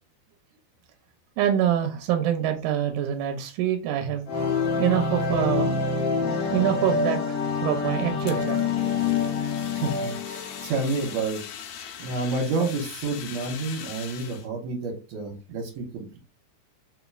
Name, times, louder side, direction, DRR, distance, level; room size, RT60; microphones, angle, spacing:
voice 1, 1.4-4.2 4.8-5.7 6.5-7.2 7.6-8.6, right 10 dB, 85° right, 2.0 m, -25 dB
sound 1, 4.3-11.2, left 5 dB, 60° left, 1.8 m, -26 dB
Fire, 8.3-14.5, left 8 dB, 80° left, 1.4 m, -41 dB
voice 2, 9.7-11.4 12.0-16.2, right 3 dB, 70° right, 2.3 m, -29 dB
4.6 x 3.0 x 2.3 m
omnidirectional pair, 3.5 m